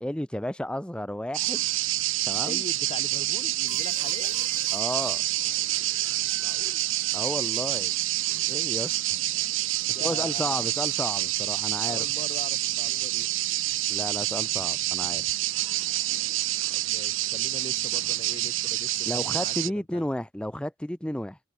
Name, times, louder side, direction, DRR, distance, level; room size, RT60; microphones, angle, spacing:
voice 1, 0.0-1.6 2.3-2.6 4.7-5.2 7.1-7.9 8.5-9.0 9.9-12.0 13.9-15.4 19.1-21.4, left 1 dB, 5° left, 0.7 m, -32 dB
sound 1, 1.3-19.7, right 16 dB, 90° right, 0.6 m, -27 dB
voice 2, 2.4-4.4 6.4-6.9 9.8-10.7 11.9-13.3 16.7-20.1, left 2 dB, 30° left, 7.0 m, -42 dB
sound 2, 3.7-6.0, left 9 dB, 85° left, 7.8 m, -47 dB
open air
head